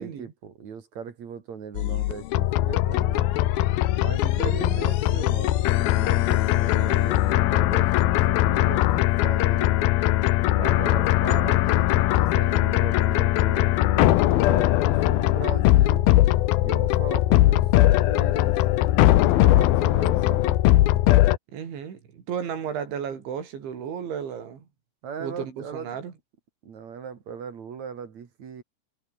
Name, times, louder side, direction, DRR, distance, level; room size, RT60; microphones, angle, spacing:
voice 1, 0.0-3.3 4.0-9.8 10.6-16.1 16.6-18.6 19.4-20.6 25.0-26.0 26.6-28.6, right 7 dB, 45° right, 2.9 m, -38 dB
sound 1, 1.7-21.4, left 15 dB, 85° left, 2.1 m, -20 dB
voice 2, 4.2-4.8 21.5-24.7 25.2-26.1, right 7 dB, 65° right, 6.3 m, -34 dB
omnidirectional pair, 5.8 m